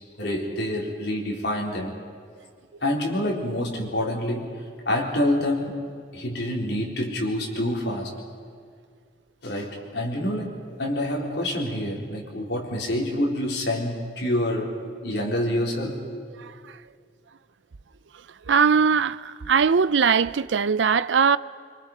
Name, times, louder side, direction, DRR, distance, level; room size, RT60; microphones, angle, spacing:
voice 1, 0.2-1.9 2.8-4.5 4.9-5.8 6.1-8.1 9.4-14.8 15.0-16.0, left 1 dB, 70° left, 4.2 m, -27 dB
voice 2, 18.5-21.4, right 6 dB, 90° right, 0.5 m, -20 dB
26.0 x 24.5 x 5.5 m
head